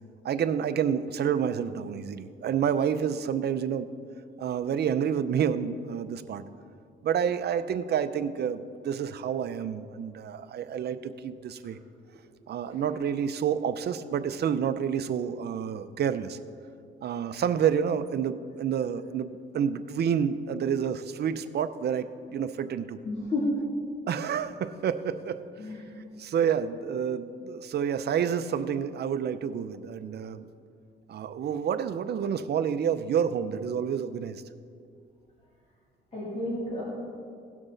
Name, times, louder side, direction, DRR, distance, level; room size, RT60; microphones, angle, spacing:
voice 1, 0.2-3.9 4.4-6.4 7.0-11.8 12.5-16.4 17.0-23.0 24.1-25.4 26.2-30.5 31.1-34.4, right 8 dB, 55° right, 12 dB, 0.6 m, -29 dB
voice 2, 23.0-23.5 25.6-25.8 36.1-36.8, left 2 dB, 30° left, -8 dB, 2.9 m, -31 dB
17.5 x 6.1 x 3.9 m, 2.3 s
cardioid pair, 90°, 20 cm